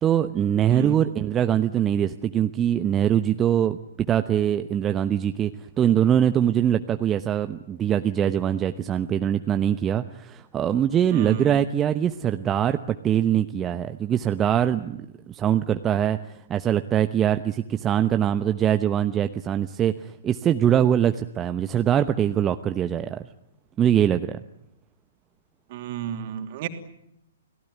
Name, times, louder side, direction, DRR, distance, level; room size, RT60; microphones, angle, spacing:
voice 1, 0.0-3.8 4.1-5.5 5.8-23.2 23.8-24.4, right 10 dB, 20° right, 9 dB, 1.0 m, -23 dB
voice 2, 0.7-1.0 11.1-11.6 25.7-26.7, right 9 dB, 45° right, 6 dB, 3.1 m, -31 dB
29.5 x 19.0 x 9.4 m, 0.81 s
figure-of-eight pair, 115°, 0 cm